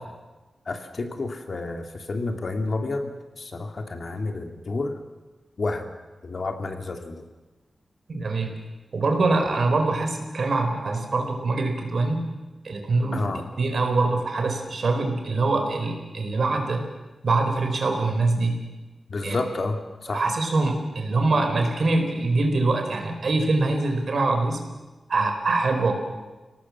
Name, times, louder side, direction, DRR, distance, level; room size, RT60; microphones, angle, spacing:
voice 1, 0.7-5.0 5.6-5.9 6.2-7.2 13.1-13.4 19.1-20.2, left 3 dB, 50° left, 5 dB, 2.3 m, -30 dB
voice 2, 8.1-8.5 8.9-12.3 12.6-16.8 17.2-18.6 19.2-19.4 20.1-24.6 25.1-25.9, right 3 dB, 60° right, 4 dB, 4.3 m, -24 dB
30.0 x 18.5 x 7.3 m, 1.2 s
wide cardioid pair, 160°, 0 cm